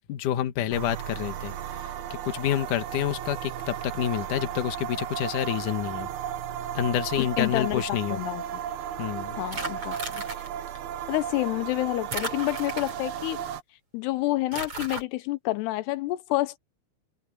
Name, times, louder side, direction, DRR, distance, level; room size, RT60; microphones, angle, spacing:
voice 1, 0.1-1.9 2.2-6.1 6.7-8.2 9.0-9.4, left 11 dB, 60° left, 2.6 m, -28 dB
sound 1, 0.7-13.6, right 10 dB, 75° right, 3.2 m, -35 dB
voice 2, 7.2-7.8 8.1-8.4 9.4-10.2 11.1-13.4 13.9-16.6, left 18 dB, 90° left, 3.0 m, -28 dB
sound 2, 9.5-10.5 12.1-13.2 14.5-15.0, right 2 dB, 35° right, 8.0 m, -35 dB
open air
omnidirectional pair, 4.6 m